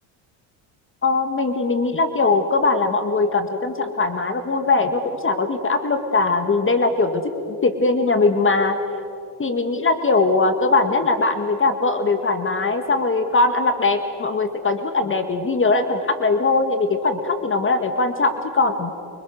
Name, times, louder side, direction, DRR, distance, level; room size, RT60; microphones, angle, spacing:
voice 1, 1.0-7.2 7.5-8.8 9.4-18.9, left 3 dB, 25° left, 8 dB, 1.9 m, -20 dB
30.0 x 25.0 x 6.5 m, 2.4 s
supercardioid pair, 95°, 46 cm